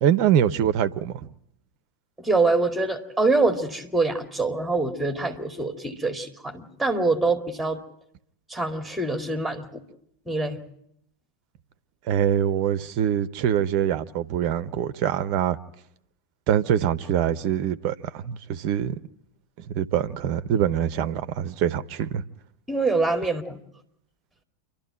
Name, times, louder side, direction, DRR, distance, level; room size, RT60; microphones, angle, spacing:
voice 1, 0.0-1.2 12.1-15.6 16.5-19.0 19.6-22.2, right 9 dB, 45° right, 0.8 m, -24 dB
voice 2, 2.2-7.8 8.5-9.8 10.3-10.6 22.7-23.6, right 3 dB, ahead, 2.3 m, -25 dB
28.0 x 12.0 x 8.9 m
figure-of-eight pair, 90°, 0 cm